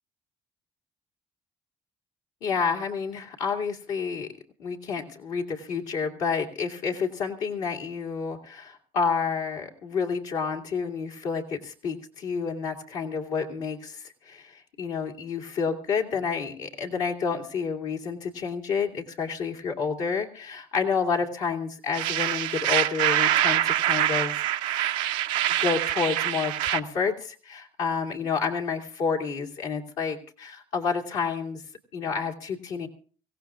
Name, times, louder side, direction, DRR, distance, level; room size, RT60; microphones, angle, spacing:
voice 1, 2.4-4.3 4.6-24.4 25.5-31.6 31.9-32.9, left 5 dB, 85° left, 0 dB, 2.4 m, -29 dB
sound 1, 21.9-26.8, right 12 dB, 85° right, 0.6 m, -25 dB
25.0 x 17.0 x 2.5 m, 0.39 s
hypercardioid pair, 55°, 13 cm